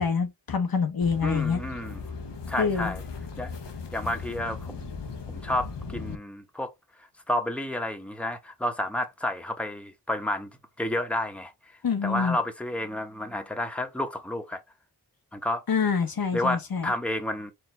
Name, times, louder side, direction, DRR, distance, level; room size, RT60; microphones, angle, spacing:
voice 1, 0.0-1.6 2.6-2.9 11.8-12.4 15.7-16.9, left 5 dB, 60° left, 0.9 m, -26 dB
sound 1, 1.0-6.2, left 4 dB, 85° left, 0.9 m, -38 dB
voice 2, 1.2-2.0 2.5-3.0 3.4-3.5 3.9-5.0 5.3-6.7 7.3-10.5 10.8-11.5 12.0-14.6 15.3-15.6 16.3-17.5, left 1 dB, 5° left, 1.0 m, -30 dB
4.5 x 2.6 x 3.3 m
cardioid pair, 50°, 41 cm